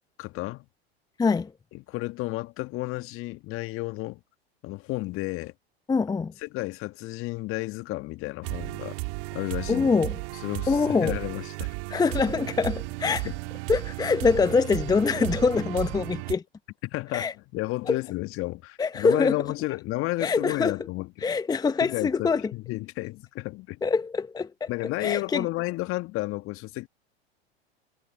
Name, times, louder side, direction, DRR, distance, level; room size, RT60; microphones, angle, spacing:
voice 1, 0.2-0.6 1.7-4.2 4.6-5.5 6.4-9.0 9.3-9.9 10.4-11.7 13.0-13.4 16.8-21.1 21.8-23.8 24.7-26.9, left 20 dB, 40° left, 1.5 m, -32 dB
voice 2, 1.2-1.5 5.9-6.3 9.7-10.2 10.7-11.2 11.9-13.3 13.7-16.4 17.1-17.3 17.9-18.0 18.8-19.4 20.2-20.7 21.2-22.4 23.8-24.7 25.0-25.4, left 4 dB, 10° left, 0.9 m, -24 dB
sound 1, 8.4-16.3, right 34 dB, 55° right, 2.2 m, -34 dB
hypercardioid pair, 95°, 32 cm